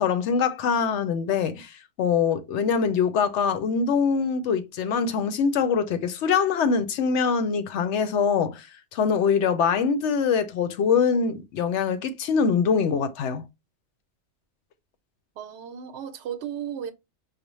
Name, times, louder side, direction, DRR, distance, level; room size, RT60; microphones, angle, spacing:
voice 1, 0.0-8.7 8.9-13.4, left 6 dB, 85° left, 0.9 m, -23 dB
voice 2, 15.4-16.9, right 9 dB, 75° right, 0.9 m, -34 dB
4.9 x 2.1 x 3.0 m
omnidirectional pair, 1.2 m